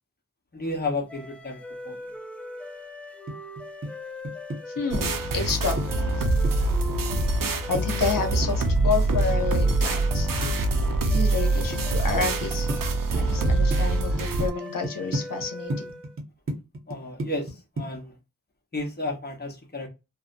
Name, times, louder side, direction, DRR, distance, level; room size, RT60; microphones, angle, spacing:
voice 1, 0.5-2.1 16.9-18.2 18.7-19.9, left 2 dB, 30° left, 0.8 m, -32 dB
sound 1, 1.1-16.2, left 2 dB, 5° left, 0.3 m, -40 dB
sound 2, 3.3-3.9 4.2-5.9 6.2-7.9 8.2-10.9 11.1-11.8 12.1-12.8 13.1-13.8 14.1-14.5 14.8-17.5 17.8-18.0, right 1 dB, 40° right, 0.7 m, -32 dB
voice 2, 4.7-5.8 6.2-6.3 7.7-10.3 11.1-12.7 13.1-15.9, left 4 dB, 80° left, 0.7 m, -29 dB
sound 3, 4.9-14.5, right 2 dB, 80° right, 0.5 m, -24 dB
2.6 x 2.0 x 2.4 m
wide cardioid pair, 70°, 33 cm